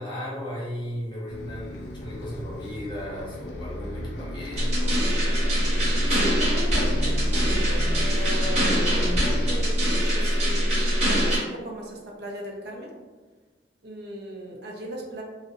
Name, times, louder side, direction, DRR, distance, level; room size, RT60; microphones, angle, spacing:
voice 1, 0.0-5.0, equal, 25° left, -6 dB, 0.7 m, -35 dB
Bus, 1.3-9.6, equal, 75° left, 0.4 m, -35 dB
sound 1, 4.6-11.4, equal, 40° right, 1.0 m, -23 dB
voice 2, 6.1-12.9 13.8-15.2, right 1 dB, 65° right, 0 dB, 0.5 m, -37 dB
2.6 x 2.0 x 2.5 m, 1.3 s
head